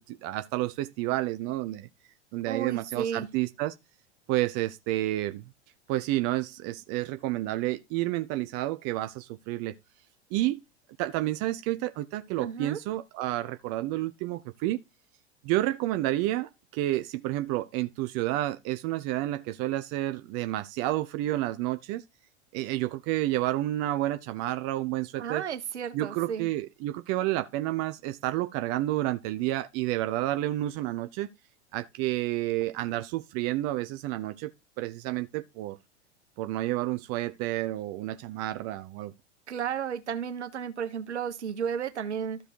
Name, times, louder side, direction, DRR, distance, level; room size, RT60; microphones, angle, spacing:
voice 1, 0.0-1.9 2.3-3.7 4.3-5.4 5.9-9.7 10.3-10.6 11.0-14.8 15.4-22.0 22.5-25.4 25.9-31.3 31.7-34.5 34.8-35.8 36.4-39.1, right 16 dB, 45° right, 0.7 m, -30 dB
voice 2, 2.5-3.3 12.4-12.8 25.2-26.5 39.5-42.4, right 8 dB, 80° right, 1.4 m, -33 dB
13.0 x 5.0 x 4.6 m
hypercardioid pair, 90°, 34 cm